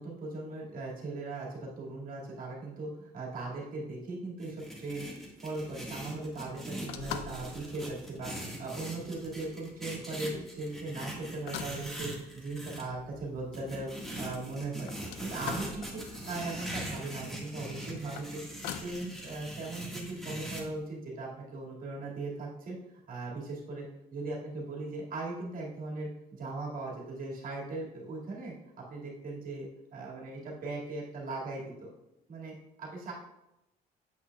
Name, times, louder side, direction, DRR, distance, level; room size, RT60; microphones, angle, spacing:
voice 1, 0.0-5.1 5.4-13.9 14.2-14.9 15.2-16.0 16.3-18.4 18.8-22.8 23.1-23.9 24.1-28.5 28.9-31.9 32.3-32.5 32.8-33.1, right 2 dB, 55° right, -3 dB, 2.2 m, -39 dB
sound 1, 4.4-12.8 13.5-20.6, right 1 dB, ahead, 1.6 m, -42 dB
sound 2, 5.6-20.9, left 8 dB, 90° left, 0.5 m, -47 dB
8.3 x 5.6 x 2.3 m, 0.91 s
cardioid pair, 110°, 17 cm